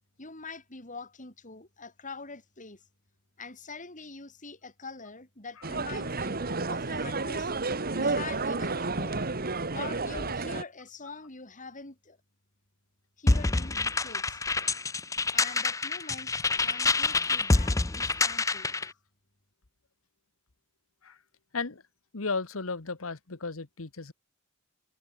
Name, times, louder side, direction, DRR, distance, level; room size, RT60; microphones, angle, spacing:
voice 1, 0.2-2.8 3.4-7.5 7.9-9.2 9.7-12.2 13.2-14.4 15.3-18.7, left 4 dB, 40° left, 5.0 m, -44 dB
sound 1, 5.6-10.6, right 3 dB, 45° right, 2.1 m, -31 dB
sound 2, 13.3-18.9, left 3 dB, 15° left, 0.5 m, -27 dB
voice 2, 22.1-24.1, left 4 dB, 85° left, 1.4 m, -35 dB
head